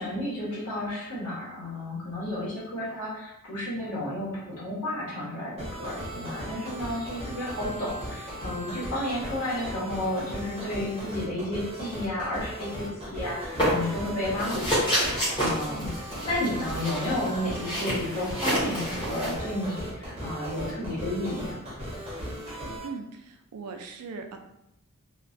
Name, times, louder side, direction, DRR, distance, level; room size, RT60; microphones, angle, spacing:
voice 1, 0.0-21.6, left 1 dB, 70° left, -7 dB, 1.1 m, -32 dB
sound 1, 5.6-22.9, equal, 25° right, 0.6 m, -37 dB
sound 2, 13.6-14.1 14.4-19.3, equal, 20° left, 0.8 m, -28 dB
voice 2, 22.8-24.4, right 4 dB, 85° right, 5 dB, 0.4 m, -39 dB
2.4 x 2.2 x 2.5 m, 0.86 s
head